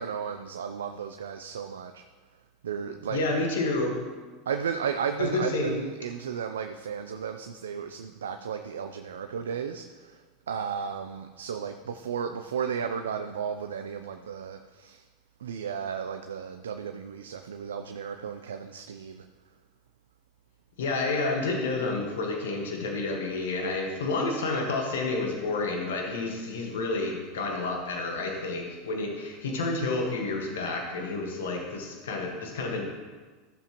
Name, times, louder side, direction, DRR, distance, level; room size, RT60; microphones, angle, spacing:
voice 1, 0.0-2.0 2.6-3.2 4.5-15.1 15.4-19.3, right 7 dB, 85° right, 7 dB, 0.4 m, -34 dB
voice 2, 3.1-4.0 5.2-5.7 20.8-32.8, left 3 dB, 80° left, 1 dB, 1.4 m, -30 dB
14.0 x 7.1 x 3.0 m, 1.4 s
hypercardioid pair, 90°, 0 cm